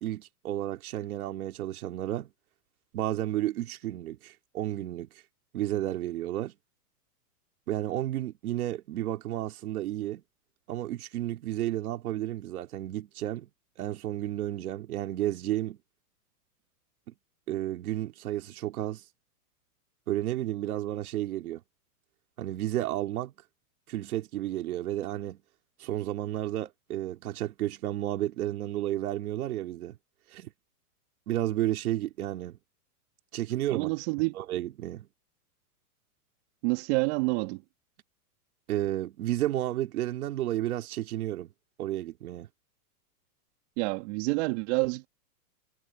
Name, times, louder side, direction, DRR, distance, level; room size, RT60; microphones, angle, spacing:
voice 1, 0.0-2.3 2.9-5.1 5.5-6.5 7.7-10.2 10.7-13.5 13.8-15.8 17.1-17.2 17.5-19.0 20.1-21.6 22.4-23.3 23.9-25.4 25.8-30.0 30.3-30.5 31.3-32.6 33.3-33.9 34.3-35.1 38.7-41.5 41.8-42.5, right 14 dB, 70° right, 2.6 m, -32 dB
voice 2, 33.7-34.3 36.6-37.6 43.8-45.1, right 26 dB, 45° right, 2.8 m, -28 dB
hypercardioid pair, 145°, 45 cm